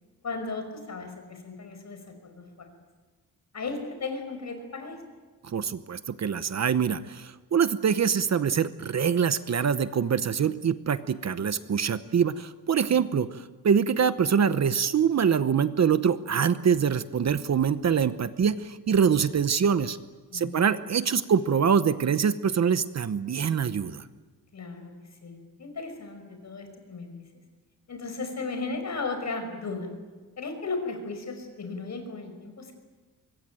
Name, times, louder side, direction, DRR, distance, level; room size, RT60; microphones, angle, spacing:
voice 1, 0.2-2.7 3.5-5.0 12.9-13.0 20.3-20.7 24.5-27.2 27.9-29.9 30.4-32.7, left 3 dB, 50° left, 6 dB, 5.6 m, -36 dB
voice 2, 5.4-20.0 20.3-24.0, right 7 dB, 45° right, 13 dB, 0.9 m, -24 dB
25.0 x 22.0 x 9.1 m, 1.3 s
wide cardioid pair, 150°, 36 cm